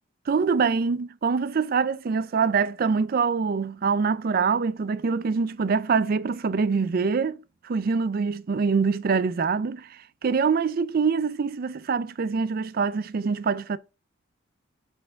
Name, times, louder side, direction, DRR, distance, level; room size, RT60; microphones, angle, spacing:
voice 1, 0.3-13.8, right 5 dB, 50° right, 0.4 m, -25 dB
6.4 x 3.4 x 5.2 m
head